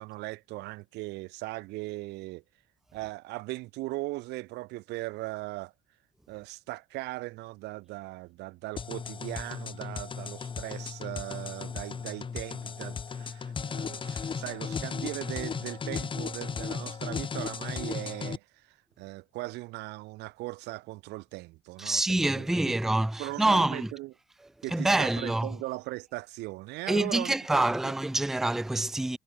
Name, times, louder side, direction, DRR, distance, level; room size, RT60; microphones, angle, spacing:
voice 1, 0.0-2.4 2.9-5.7 6.3-22.8 23.2-24.1 24.6-27.9, right 21 dB, 90° right, 1.1 m, -39 dB
sound 1, 8.8-18.4, left 6 dB, 30° left, 1.5 m, -36 dB
voice 2, 21.8-23.9 24.7-25.6 26.9-29.2, right 2 dB, ahead, 0.4 m, -26 dB
cardioid pair, 110°, 17 cm